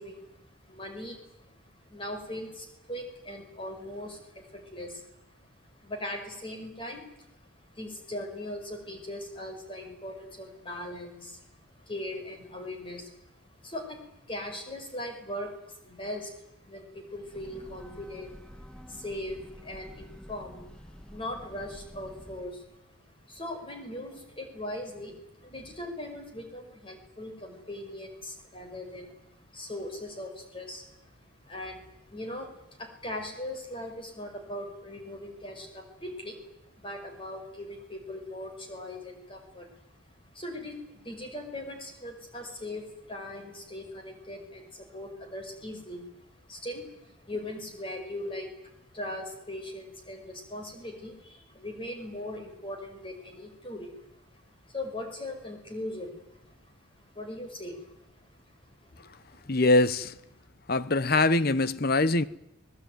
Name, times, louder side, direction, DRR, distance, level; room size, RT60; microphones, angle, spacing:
voice 1, 0.0-58.9 59.3-59.4, left 1 dB, 25° left, 5.6 m, -40 dB
Breathing / Train, 17.1-22.6, equal, 5° left, 1.2 m, -49 dB
voice 2, 59.5-60.1 60.7-62.2, left 2 dB, 45° left, 1.0 m, -23 dB
24.5 x 20.0 x 9.5 m
head